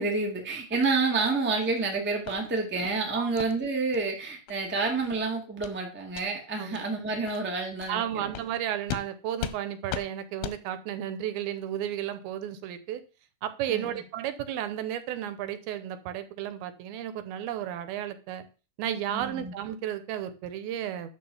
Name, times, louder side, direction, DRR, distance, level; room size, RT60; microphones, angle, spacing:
voice 1, 0.0-8.3 13.7-14.0 19.1-19.5, right 3 dB, 10° right, 1 dB, 0.7 m, -29 dB
sound 1, 2.3-2.4 2.8-3.0 3.4-3.5 3.9-4.0 4.5-4.6 5.0-5.2 5.6-5.8 6.1-6.3 6.7-6.8 7.3-7.4 7.8-7.9 8.3-8.5 8.9-9.1 9.4-9.6 9.9-10.1 10.4-10.6, left 11 dB, 90° left, 2.6 m, -36 dB
voice 2, 7.9-13.0 13.4-18.5 18.8-21.1, right 10 dB, 85° right, 12 dB, 2.7 m, -33 dB
10.5 x 4.1 x 7.0 m, 0.34 s
omnidirectional pair, 4.3 m